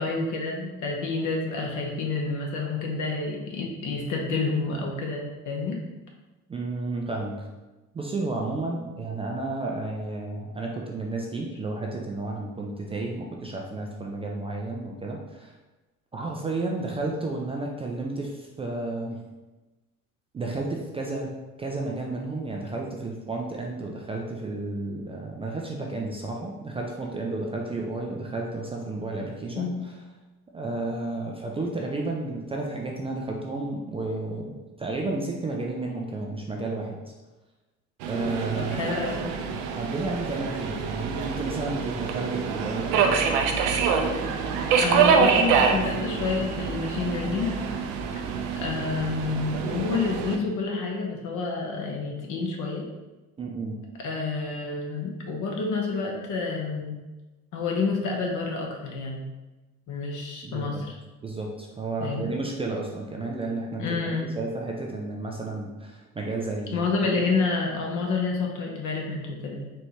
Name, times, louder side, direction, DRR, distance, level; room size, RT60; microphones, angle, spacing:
voice 1, 0.0-5.8 29.6-29.8 38.6-39.4 44.5-47.5 48.6-52.9 54.0-57.0 57.5-59.2 59.9-60.9 62.0-62.3 63.8-64.3 66.7-69.7, left 4 dB, 45° left, 0 dB, 0.9 m, -29 dB
voice 2, 6.5-7.5 7.9-15.5 16.1-19.2 20.3-29.7 30.5-37.0 38.1-38.9 39.8-43.3 53.4-53.8 60.4-60.8 61.2-66.8 67.0-67.2, right 2 dB, 15° right, -1 dB, 0.3 m, -32 dB
Subway metro underground, 38.0-50.4, right 6 dB, 60° right, 0.6 m, -26 dB
4.4 x 3.1 x 2.8 m, 1.1 s
figure-of-eight pair, 55°, 44 cm